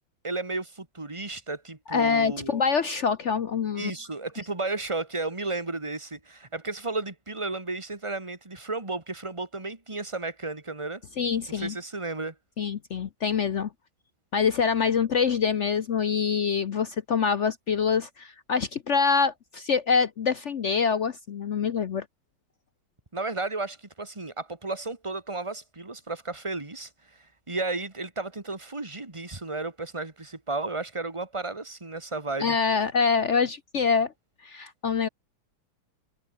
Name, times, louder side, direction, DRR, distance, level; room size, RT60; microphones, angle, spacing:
voice 1, 0.2-2.6 3.8-11.0 11.5-12.3 23.1-26.9 27.5-32.6, right 3 dB, 15° right, 2.6 m, -33 dB
voice 2, 1.9-3.9 11.2-11.7 12.6-13.7 14.3-22.0 32.4-34.1 34.4-35.1, left 6 dB, 60° left, 0.7 m, -25 dB
omnidirectional pair, 2.2 m